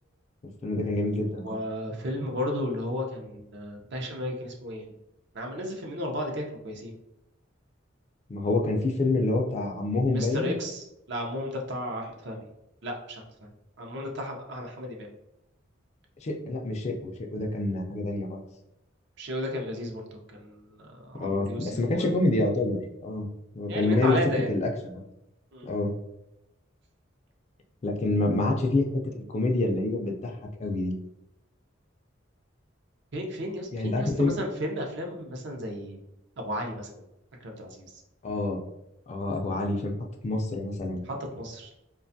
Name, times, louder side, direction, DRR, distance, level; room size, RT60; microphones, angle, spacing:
voice 1, 0.6-1.6 8.3-10.5 16.2-18.4 21.2-23.3 23.5-24.2 24.5-25.0 25.6-25.9 27.8-28.9 29.1-30.3 30.6-30.9 33.7-34.4 38.2-38.6 39.1-39.9 40.2-41.0, left 2 dB, 35° left, 2 dB, 0.4 m, -27 dB
voice 2, 1.1-4.9 5.3-7.0 10.1-12.5 12.8-13.5 13.8-15.1 19.2-22.1 23.7-24.5 25.5-25.7 28.1-28.2 33.1-36.0 36.4-37.0 37.4-38.0 40.9-41.7, equal, 60° right, 1 dB, 0.5 m, -34 dB
2.4 x 2.3 x 2.6 m, 0.86 s
head